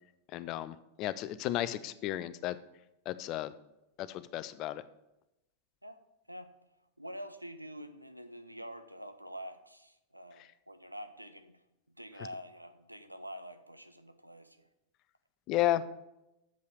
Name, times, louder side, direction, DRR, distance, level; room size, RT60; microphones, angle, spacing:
voice 1, 0.3-2.6 3.1-3.5 4.0-4.8 15.5-15.8, left 13 dB, 40° left, 15 dB, 0.5 m, -33 dB
voice 2, 7.0-11.6 12.0-14.7, equal, 90° right, 9 dB, 0.6 m, -46 dB
7.7 x 5.5 x 6.7 m, 0.90 s
figure-of-eight pair, 90°, 0 cm